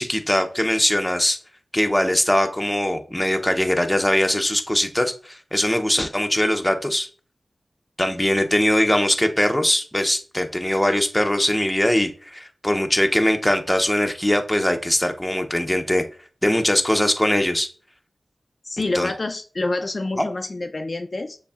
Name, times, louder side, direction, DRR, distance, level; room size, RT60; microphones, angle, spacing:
voice 1, 0.0-1.4 1.7-7.1 8.0-16.0 16.4-17.7 18.9-19.1 20.2-20.3, left 1 dB, 10° left, 6 dB, 0.6 m, -21 dB
voice 2, 18.6-21.4, left 2 dB, 50° left, 5 dB, 0.4 m, -27 dB
6.8 x 2.6 x 2.3 m, 0.40 s
cardioid pair, 45°, 0 cm